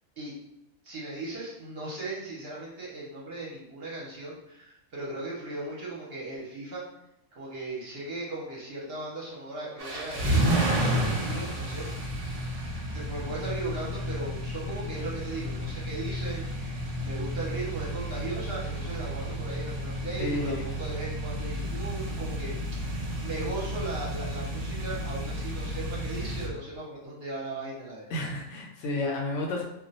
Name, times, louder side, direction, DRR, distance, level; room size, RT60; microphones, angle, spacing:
voice 1, 0.8-6.8 7.3-11.9 12.9-22.5 23.2-28.3, right 2 dB, 55° right, -5 dB, 0.8 m, -37 dB
sound 1, 9.8-26.5, right 1 dB, 80° right, 0.3 m, -31 dB
voice 2, 20.2-20.6 28.1-29.6, left 2 dB, 70° left, -1 dB, 0.8 m, -31 dB
2.3 x 2.1 x 3.9 m, 0.85 s
omnidirectional pair, 1.4 m